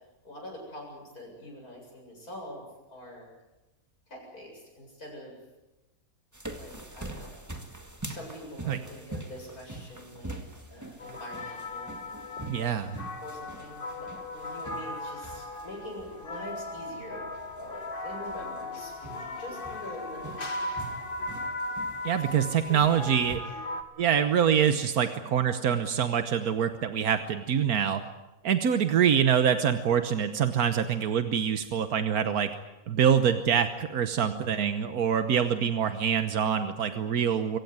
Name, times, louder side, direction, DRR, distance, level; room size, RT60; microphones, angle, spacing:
voice 1, 0.2-2.6 2.9-3.3 4.1-5.3 6.6-7.3 8.1-11.9 13.2-17.2 17.6-20.5 22.0-22.1 22.7-23.0, left 1 dB, 80° left, 0 dB, 8.3 m, -44 dB
sound 1, 6.3-23.4, right 2 dB, 10° right, 1.9 m, -44 dB
sound 2, 11.0-23.8, left 2 dB, 35° left, 1.9 m, -37 dB
voice 2, 12.5-13.0 22.0-23.4 24.0-28.0 28.4-32.5 32.9-37.6, right 8 dB, 85° right, 9 dB, 1.6 m, -25 dB
26.0 x 16.0 x 9.5 m, 1.0 s
omnidirectional pair, 1.5 m